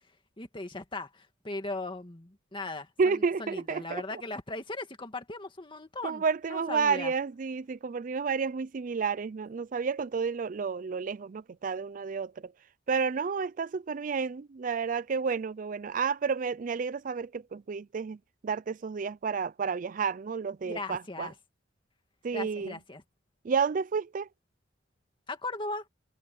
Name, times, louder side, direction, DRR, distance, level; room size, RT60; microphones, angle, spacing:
voice 1, 0.4-6.2 6.5-7.1 20.6-21.3 22.3-23.0 25.3-25.9, left 2 dB, 25° left, 2.1 m, -38 dB
voice 2, 3.0-4.0 6.0-12.5 12.9-18.2 18.4-21.3 22.2-22.8 23.4-24.3, right 5 dB, 45° right, 0.4 m, -31 dB
head